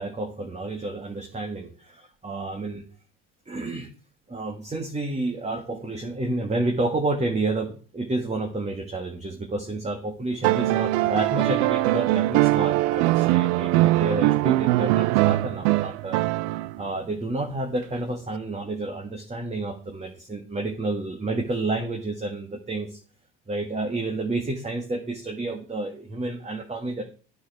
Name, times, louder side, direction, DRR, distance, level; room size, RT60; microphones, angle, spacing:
voice 1, 0.0-2.8 3.5-3.9 4.3-16.2 16.8-23.0 23.5-27.0, right 2 dB, 20° right, 3 dB, 1.7 m, -30 dB
sound 1, 10.4-16.9 18.4-18.5, right 17 dB, 80° right, 0.5 m, -22 dB
9.1 x 7.0 x 6.2 m, 0.39 s
supercardioid pair, 90°, 37 cm